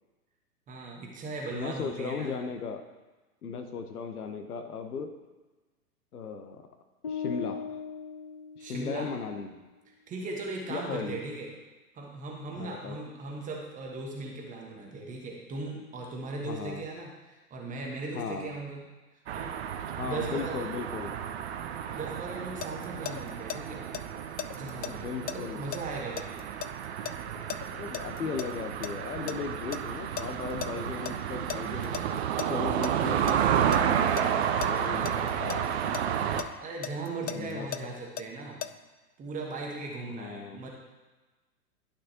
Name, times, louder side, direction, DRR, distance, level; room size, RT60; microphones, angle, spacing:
voice 1, 0.7-2.4 8.6-9.1 10.1-11.5 11.9-18.9 19.3-19.6 20.0-20.6 21.9-23.8 24.5-26.5 34.8-35.3 36.6-38.6 39.2-40.7, right 3 dB, 15° right, -1 dB, 1.3 m, -38 dB
voice 2, 1.5-2.8 3.4-5.1 6.1-6.6 7.0-7.8 8.6-9.6 10.7-11.2 12.6-13.0 16.4-16.8 18.1-18.6 20.0-21.1 24.8-25.7 27.7-32.0 32.5-34.1 34.6-35.0 35.4-35.7 37.2-37.7 40.1-40.6, left 5 dB, 70° left, 7 dB, 1.0 m, -36 dB
sound 1, 7.0-9.2, left 6 dB, 25° left, 0.3 m, -38 dB
sound 2, 19.3-36.4, right 9 dB, 45° right, 0.6 m, -31 dB
sound 3, 22.2-23.6 23.9-28.5 28.8-30.7 31.0-31.1 31.5-32.9 33.3-33.8 34.2-36.0 36.4-38.7, left 10 dB, 90° left, 0.6 m, -37 dB
11.5 x 6.2 x 2.9 m, 1.2 s
figure-of-eight pair, 115°, 47 cm